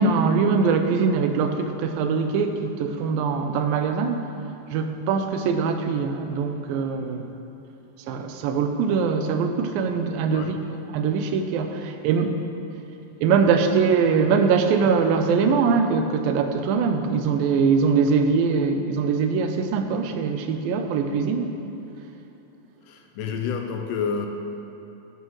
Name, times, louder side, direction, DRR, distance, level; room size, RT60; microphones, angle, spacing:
voice 1, 0.0-4.3 4.7-7.3 8.1-10.5 10.9-12.4 13.2-21.5, right 5 dB, 90° right, 6 dB, 2.4 m, -22 dB
voice 2, 22.8-24.3, left 6 dB, 80° left, 4 dB, 2.1 m, -29 dB
12.5 x 11.0 x 3.1 m, 3.0 s
omnidirectional pair, 4.0 m